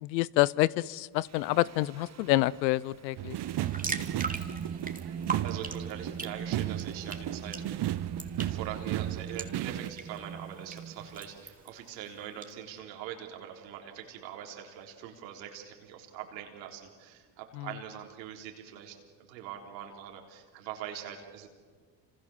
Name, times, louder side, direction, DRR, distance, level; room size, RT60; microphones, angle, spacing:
voice 1, 0.0-3.4 17.5-17.7, left 18 dB, 85° left, 22 dB, 0.8 m, -27 dB
Singing, 1.2-11.6, right 6 dB, 30° right, 1.6 m, -42 dB
sound 1, 3.2-9.9, right 14 dB, 50° right, 0.9 m, -35 dB
sound 2, 3.4-12.5, right 4 dB, 15° right, 2.9 m, -42 dB
voice 2, 5.4-7.7 8.4-21.5, right 10 dB, 85° right, 2 dB, 3.9 m, -43 dB
29.5 x 27.0 x 7.2 m, 1.5 s
hypercardioid pair, 65°, 50 cm